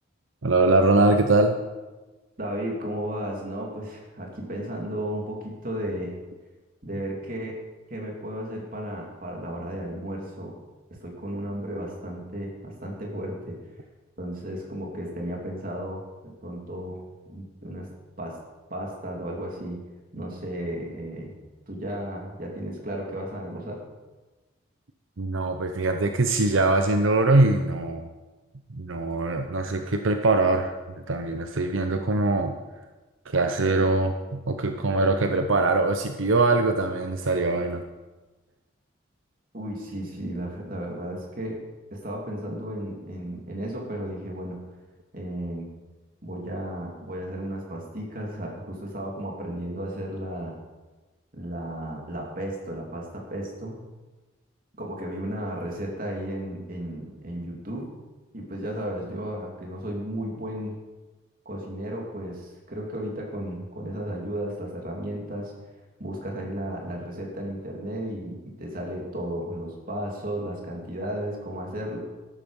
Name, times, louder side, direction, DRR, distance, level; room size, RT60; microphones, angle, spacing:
voice 1, 0.4-1.6 25.2-28.1 28.7-30.7 31.1-32.5 33.3-37.8, right 2 dB, 85° right, 6 dB, 0.8 m, -22 dB
voice 2, 2.4-6.1 6.8-7.5 7.9-10.5 11.0-13.6 14.2-17.0 17.3-17.9 18.2-18.4 18.7-19.8 20.1-21.3 21.7-23.8 39.5-41.6 41.9-44.6 45.1-45.7 46.2-50.5 51.3-53.8 54.8-57.9 58.3-60.8 61.4-65.5 66.0-72.0, right 1 dB, 45° right, -1 dB, 3.2 m, -34 dB
13.5 x 12.0 x 5.4 m, 1.2 s
head